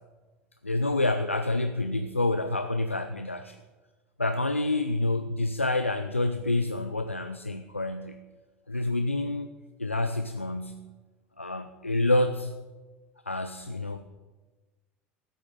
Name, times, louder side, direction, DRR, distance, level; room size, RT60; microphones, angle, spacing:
voice 1, 0.6-3.6 4.2-8.2 8.7-9.5 9.8-10.8 11.4-12.5 13.3-14.1, left 2 dB, 90° left, 9 dB, 0.5 m, -28 dB
14.5 x 8.9 x 7.2 m, 1.3 s
figure-of-eight pair, 70°, 7 cm